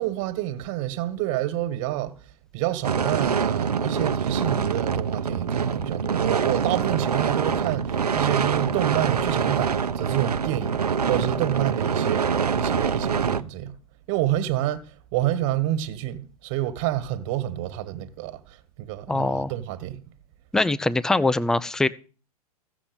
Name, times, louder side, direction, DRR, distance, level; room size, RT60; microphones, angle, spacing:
voice 1, 0.0-2.1 2.5-13.7 14.1-14.8 15.1-18.4 18.8-20.0, right 13 dB, 45° right, 1.9 m, -28 dB
sound 1, 2.8-13.4, right 6 dB, 80° right, 0.9 m, -25 dB
voice 2, 19.1-19.5 20.5-21.9, left 2 dB, 5° left, 0.5 m, -22 dB
15.5 x 7.3 x 7.1 m
figure-of-eight pair, 105°, 20 cm